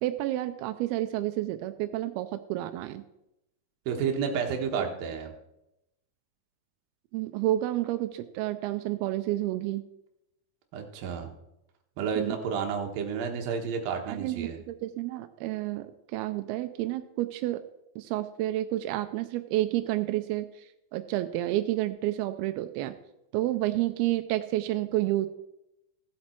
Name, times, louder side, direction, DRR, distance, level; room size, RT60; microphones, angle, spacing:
voice 1, 0.0-3.0 7.1-9.8 12.2-12.4 14.1-17.6 18.0-22.9 23.3-25.3, right 15 dB, 90° right, 9 dB, 2.5 m, -30 dB
voice 2, 3.9-5.3 10.7-11.3 12.0-14.6, right 6 dB, 70° right, 3 dB, 2.9 m, -31 dB
16.0 x 7.5 x 4.4 m, 0.86 s
omnidirectional pair, 4.4 m